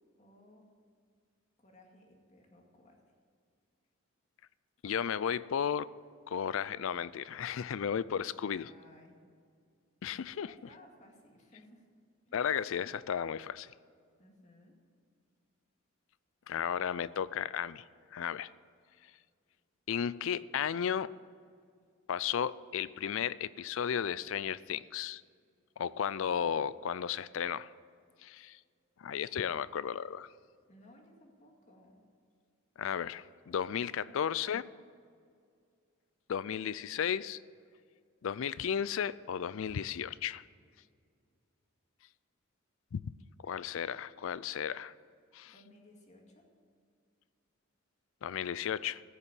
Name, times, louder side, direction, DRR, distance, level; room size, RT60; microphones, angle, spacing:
voice 1, 0.2-0.7 1.6-3.0 8.4-9.1 10.4-11.9 12.3-12.4 14.2-14.8 30.7-32.0 33.9-34.2 45.4-46.5, left 1 dB, 35° left, 1 dB, 2.2 m, -59 dB
voice 2, 4.8-5.9 6.3-8.7 10.0-10.5 12.3-13.7 16.5-17.8 18.1-18.5 19.9-21.1 22.1-25.2 25.8-27.7 28.2-28.6 29.0-30.3 32.8-34.7 36.3-37.4 38.2-40.4 42.9-43.1 43.4-44.9 45.3-45.5 48.2-49.0, left 8 dB, 70° left, 19 dB, 0.4 m, -34 dB
15.0 x 6.8 x 7.5 m, 2.2 s
head